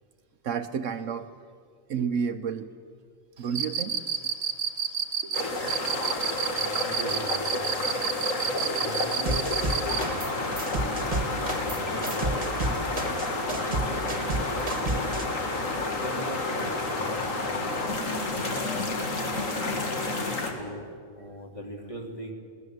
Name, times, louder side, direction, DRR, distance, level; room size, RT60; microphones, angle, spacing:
voice 1, 0.4-1.3 1.9-2.7 3.4-4.3 5.2-5.6 5.9-6.4 6.8-6.9 8.6-8.9, right 6 dB, 65° right, 10 dB, 1.1 m, -32 dB
Cricket, 3.5-10.1, right 7 dB, 50° right, 1.6 m, -29 dB
sound 1, 5.3-20.5, left 2 dB, 65° left, 2.5 m, -30 dB
voice 2, 6.5-7.8 8.4-12.5 13.2-15.1 15.7-17.8 18.0-18.9 19.2-19.6 20.5-20.9 21.1-22.3, equal, 25° left, 1 dB, 3.1 m, -41 dB
sound 2, 9.2-10.3 10.6-15.2, right 3 dB, 35° right, 1.8 m, -30 dB
22.0 x 17.5 x 7.9 m, 2.1 s
omnidirectional pair, 1.5 m